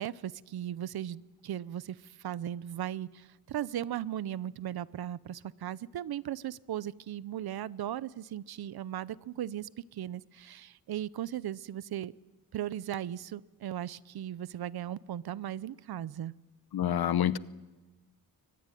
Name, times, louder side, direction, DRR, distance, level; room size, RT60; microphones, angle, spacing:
voice 1, 0.0-12.1 12.5-16.3, right 11 dB, 80° right, 19 dB, 0.7 m, -37 dB
voice 2, 16.7-17.4, left 10 dB, 80° left, 16 dB, 0.8 m, -27 dB
23.0 x 20.5 x 9.2 m, 1.2 s
wide cardioid pair, 155°, 37 cm